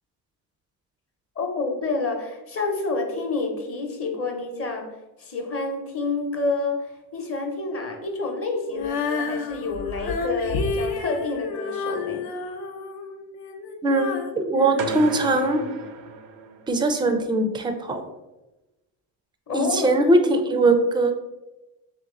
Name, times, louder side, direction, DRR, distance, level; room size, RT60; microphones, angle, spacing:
voice 1, 1.4-4.9 5.2-12.2 19.5-19.9, left 3 dB, 35° left, 2 dB, 0.9 m, -28 dB
Female singing, 8.7-15.8, left 4 dB, 65° left, 0.7 m, -31 dB
voice 2, 13.8-15.6 16.7-18.0 19.5-21.1, right 2 dB, 10° right, 6 dB, 0.4 m, -21 dB
sound 1, 14.8-16.9, right 5 dB, 90° right, 0.6 m, -34 dB
3.5 x 2.9 x 3.7 m, 1.0 s
cardioid pair, 110°, 40 cm